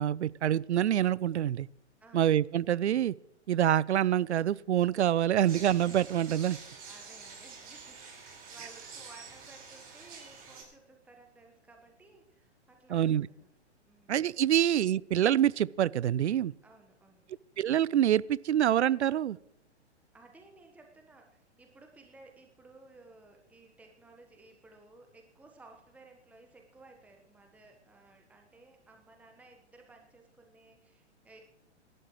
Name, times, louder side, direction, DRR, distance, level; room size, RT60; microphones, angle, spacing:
voice 1, 0.0-1.7 2.1-3.1 3.5-6.6 12.9-13.3 14.1-16.5 17.6-19.4, right 11 dB, 75° right, 22 dB, 0.5 m, -26 dB
voice 2, 2.0-2.4 6.9-13.1 13.4-13.5 13.8-14.6 16.6-17.3 20.1-31.4, right 3 dB, 5° right, 3 dB, 1.2 m, -57 dB
sound 1, 5.4-10.6, right 5 dB, 25° right, 5.1 m, -48 dB
25.5 x 12.0 x 3.2 m, 0.88 s
figure-of-eight pair, 115°, 35 cm